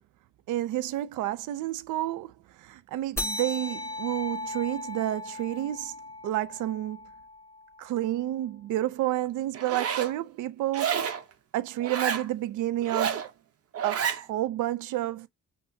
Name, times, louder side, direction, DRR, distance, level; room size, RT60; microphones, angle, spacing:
voice 1, 0.5-2.3 2.6-6.0 6.2-7.0 7.8-11.0 11.5-13.3 13.8-15.3, right 14 dB, 80° right, 0.5 m, -30 dB
sound 1, 3.2-8.1, left 2 dB, 10° left, 1.2 m, -37 dB
Zipper (clothing), 9.5-10.1 10.7-11.2 11.8-12.3 12.8-13.3 13.7-14.2, right 7 dB, 50° right, 0.7 m, -29 dB
5.5 x 2.0 x 2.7 m
cardioid pair, 90°, 30 cm